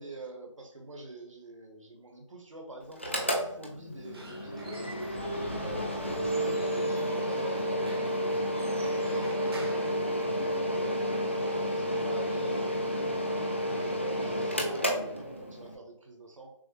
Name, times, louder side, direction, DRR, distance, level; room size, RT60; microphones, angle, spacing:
voice 1, 0.0-5.2 5.5-16.5, right 2 dB, 75° right, 2 dB, 1.3 m, -46 dB
Mechanical fan, 2.9-15.7, equal, 25° left, 0.4 m, -31 dB
Squeak / Wood, 3.9-10.8, right 2 dB, 50° right, 0.9 m, -49 dB
6.2 x 2.1 x 3.1 m, 0.72 s
figure-of-eight pair, 175°, 16 cm